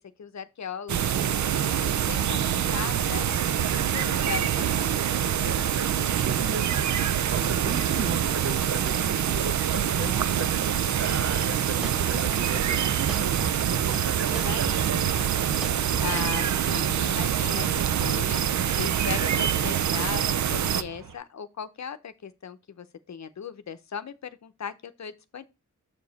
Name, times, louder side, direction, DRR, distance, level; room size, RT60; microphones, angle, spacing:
voice 1, 0.0-4.9 9.9-10.2 14.3-15.3 16.0-25.5, left 7 dB, 60° left, 0.7 m, -38 dB
sound 1, 0.9-20.8, right 9 dB, 65° right, 0.5 m, -25 dB
voice 2, 5.4-6.8 7.3-13.3 13.8-15.3, right 4 dB, 50° right, 1.0 m, -36 dB
sound 2, 6.6-21.2, right 7 dB, 85° right, 0.9 m, -46 dB
sound 3, 11.2-11.5 11.8-12.5 12.8-14.1 14.3-16.2, equal, ahead, 0.5 m, -39 dB
7.1 x 4.8 x 4.0 m
cardioid pair, 65°, 31 cm